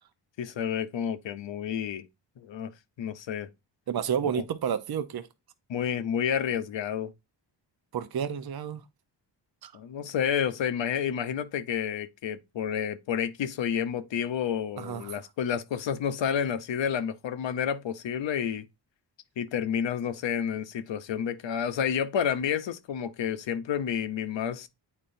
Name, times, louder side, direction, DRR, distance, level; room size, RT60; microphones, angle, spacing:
voice 1, 0.4-2.1 2.4-2.7 3.0-3.5 4.3-4.4 5.7-7.1 9.7-18.7 19.4-24.7, left 8 dB, 75° left, 0.8 m, -30 dB
voice 2, 3.9-5.3 7.9-8.8 9.6-9.7 14.8-15.2, right 8 dB, 55° right, 0.8 m, -30 dB
8.7 x 4.4 x 2.6 m
cardioid pair, 70°, 45 cm